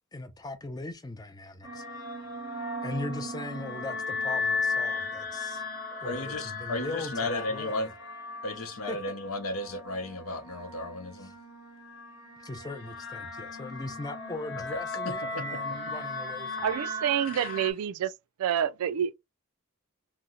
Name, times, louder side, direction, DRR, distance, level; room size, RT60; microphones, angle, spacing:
voice 1, 0.1-1.8 2.8-5.6 6.0-7.9 8.9-9.1 11.2-11.3 12.4-16.6, left 2 dB, 20° left, 0.5 m, -39 dB
sound 1, 1.6-17.7, left 3 dB, 60° left, 1.2 m, -36 dB
voice 2, 6.0-7.9 8.4-11.3 14.7-14.8 15.0-15.6 17.3-17.6, left 2 dB, 75° left, 0.8 m, -34 dB
voice 3, 16.6-18.1 18.4-19.1, right 9 dB, 90° right, 0.3 m, -28 dB
2.8 x 2.1 x 3.6 m
head